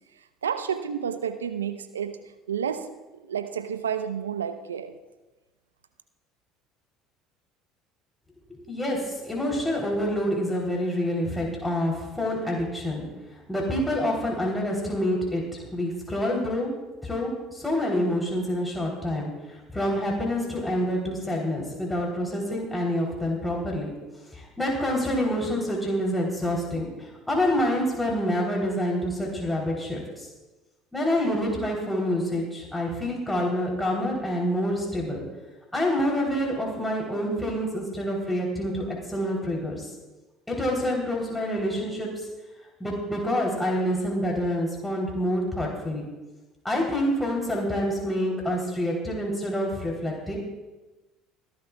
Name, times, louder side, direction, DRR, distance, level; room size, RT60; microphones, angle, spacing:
voice 1, 0.4-2.2 2.5-2.9 3.3-4.9, right 8 dB, 90° right, 9 dB, 0.8 m, -30 dB
voice 2, 8.5-13.1 13.5-16.7 17.0-23.9 24.3-30.3 30.9-35.2 35.7-39.9 40.5-42.1 42.8-46.0 46.6-50.4, equal, 10° left, -2 dB, 3.5 m, -27 dB
26.5 x 12.0 x 2.3 m, 1.1 s
hypercardioid pair, 65°, 0 cm